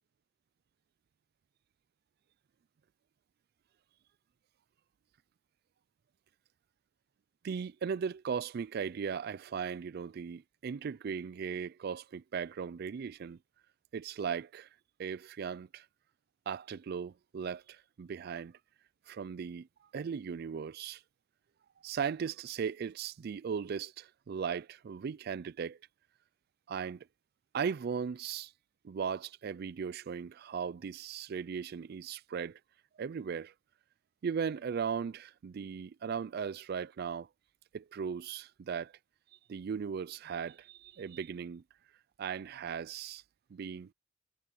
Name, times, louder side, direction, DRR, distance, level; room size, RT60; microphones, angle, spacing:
voice 1, 7.4-13.4 13.9-14.7 15.0-15.9 16.5-18.5 19.1-19.7 19.9-21.0 21.8-25.8 26.7-27.1 27.5-28.5 28.8-32.6 33.0-33.5 34.2-37.3 37.7-38.9 39.5-41.6 42.2-43.2 43.5-43.9, right 6 dB, 55° right, 0.3 m, -37 dB
head